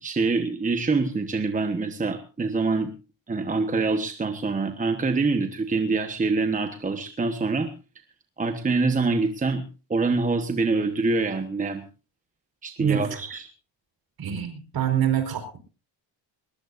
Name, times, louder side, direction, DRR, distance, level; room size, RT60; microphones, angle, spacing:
voice 1, 0.0-2.9 3.3-7.7 8.4-11.9 12.6-13.4, right 3 dB, 15° right, 7 dB, 1.2 m, -25 dB
voice 2, 12.8-13.2 14.2-15.6, right 9 dB, 50° right, 8 dB, 4.8 m, -26 dB
21.0 x 20.0 x 2.6 m, 0.32 s
cardioid pair, 170°, 46 cm